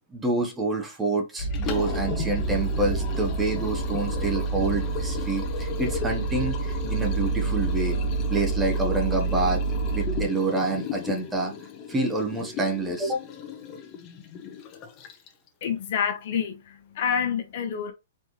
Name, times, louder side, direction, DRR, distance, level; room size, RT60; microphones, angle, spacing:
voice 1, 0.1-8.0 8.3-9.6 9.9-11.5 11.9-13.2, right 2 dB, 10° right, 1.0 m, -27 dB
sound 1, 1.4-10.2, right 3 dB, 75° left, 1.3 m, -28 dB
Liquid, 1.4-15.5, left 6 dB, 25° left, 0.9 m, -36 dB
voice 2, 15.6-17.9, left 8 dB, 50° left, 1.1 m, -28 dB
4.4 x 3.3 x 3.0 m
hypercardioid pair, 155°, 0 cm